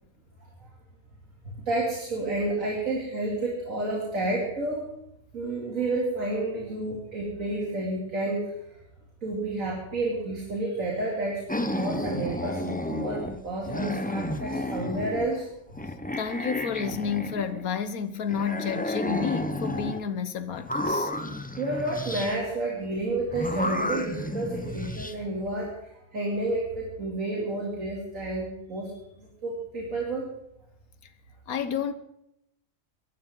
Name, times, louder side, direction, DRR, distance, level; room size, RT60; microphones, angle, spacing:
voice 1, 1.4-4.8 5.3-8.5 9.2-15.5 21.5-28.9 29.2-30.3, right 2 dB, 65° right, 3.3 m, -30 dB
sound 1, 11.5-13.4 13.6-15.4 15.7-17.8 18.3-20.0 20.5-22.4 23.3-25.1, left 1 dB, 10° left, 0.6 m, -32 dB
voice 2, 16.2-21.1 31.5-31.9, left 7 dB, 90° left, 1.6 m, -30 dB
23.5 x 13.0 x 3.8 m
omnidirectional pair, 1.5 m